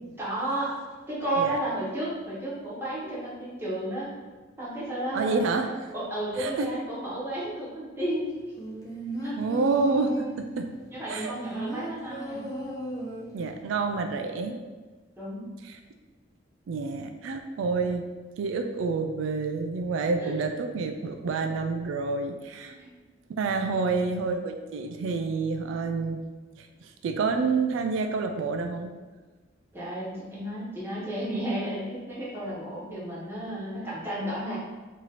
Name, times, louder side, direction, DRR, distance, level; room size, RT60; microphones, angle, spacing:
voice 1, 0.2-0.8 1.1-4.1 4.6-5.4 5.9-8.5 9.2-9.3 10.9-12.5 15.2-15.5 20.2-20.3 22.8-23.0 23.7-24.0 29.7-34.6, right 1 dB, 10° right, -8 dB, 1.1 m, -32 dB
voice 2, 5.1-5.7 6.4-6.7 9.4-10.7 11.1-11.3 13.3-14.6 15.6-15.8 16.7-18.0 18.4-22.8 23.4-26.2 26.6-28.9, right 4 dB, 85° right, 5 dB, 0.3 m, -28 dB
sound 1, 8.6-10.5 11.1-13.5 13.8-13.9, equal, 20° left, 0.6 m, -35 dB
3.0 x 2.8 x 4.0 m, 1.3 s
head